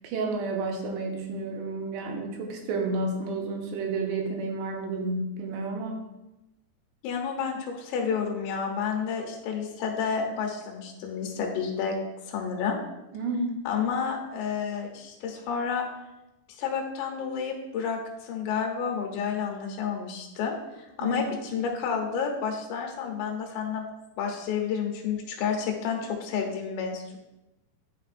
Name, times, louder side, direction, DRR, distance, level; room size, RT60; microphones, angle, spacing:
voice 1, 0.0-6.0 13.1-13.5 21.0-21.2, right 3 dB, 90° right, 1 dB, 3.2 m, -31 dB
voice 2, 7.0-12.0 12.3-12.8 13.7-15.9 16.6-23.9 24.2-27.2, left 6 dB, 85° left, 2 dB, 3.2 m, -30 dB
9.7 x 5.2 x 2.5 m, 0.97 s
omnidirectional pair, 5.0 m